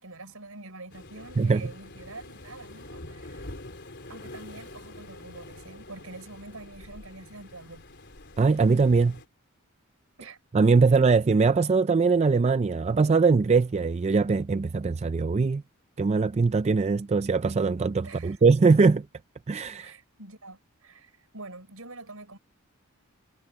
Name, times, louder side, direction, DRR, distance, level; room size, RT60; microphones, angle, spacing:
voice 1, 0.0-3.5 4.1-7.8 10.2-10.4 18.0-18.4 19.8-22.4, right 2 dB, 75° right, 5.7 m, -45 dB
Waves surf, 0.9-9.3, left 2 dB, 50° left, 4.0 m, -45 dB
voice 2, 1.4-1.7 8.4-9.2 10.5-15.6 16.0-19.1 19.5-19.9, right 4 dB, 30° right, 0.3 m, -22 dB
head